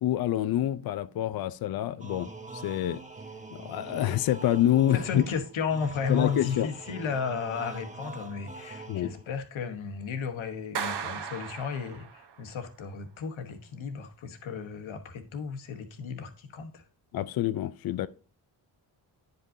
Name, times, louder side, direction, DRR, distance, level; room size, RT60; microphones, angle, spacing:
voice 1, 0.0-3.0 3.5-5.2 6.1-6.7 8.9-9.1 17.1-18.1, left 12 dB, 50° left, 0.5 m, -27 dB
sound 1, 2.0-9.4, right 3 dB, 15° right, 0.9 m, -44 dB
voice 2, 4.9-16.8, left 5 dB, 70° left, 1.2 m, -34 dB
Clapping, 10.7-12.4, right 7 dB, 55° right, 1.0 m, -36 dB
9.8 x 5.3 x 2.6 m
cardioid pair, 70°, 48 cm